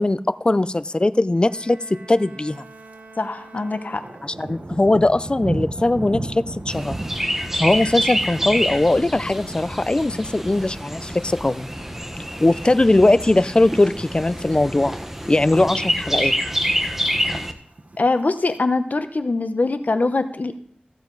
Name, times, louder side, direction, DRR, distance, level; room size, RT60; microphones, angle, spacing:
voice 1, 0.0-1.8 2.1-2.6 4.2-6.9 7.5-11.7 12.4-14.9 15.3-16.3, left 2 dB, 30° left, 14 dB, 0.4 m, -20 dB
Bowed string instrument, 1.3-4.7, right 3 dB, 80° right, 1.6 m, -46 dB
Thunder, 2.5-3.0 3.3-13.7 14.0-14.4 14.8-15.3 15.5-15.6 15.8-15.9 16.3-16.9 17.6-18.6, right 2 dB, 55° right, 1.1 m, -36 dB
voice 2, 3.2-4.1 18.0-20.6, left 3 dB, 65° left, 9 dB, 0.9 m, -23 dB
Chirp tweet, 6.7-17.5, equal, 10° right, 1.2 m, -27 dB
14.5 x 6.9 x 3.9 m, 0.62 s
wide cardioid pair, 40°, 3 cm